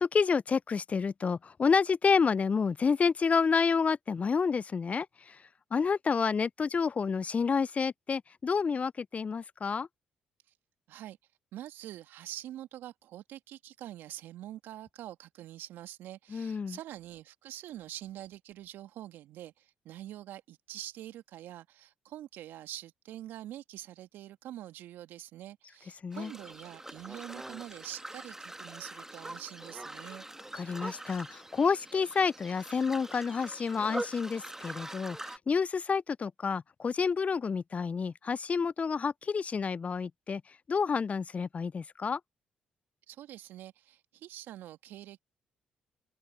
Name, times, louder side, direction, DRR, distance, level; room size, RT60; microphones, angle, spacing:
voice 1, 0.0-5.4 5.7-9.9 16.3-16.8 26.0-26.3 30.5-42.2, left 5 dB, 40° left, 0.5 m, -29 dB
voice 2, 11.5-30.2 43.1-45.2, right 13 dB, 70° right, 2.2 m, -45 dB
sound 1, 26.1-35.4, right 1 dB, 10° right, 1.7 m, -43 dB
hypercardioid pair, 45°, 4 cm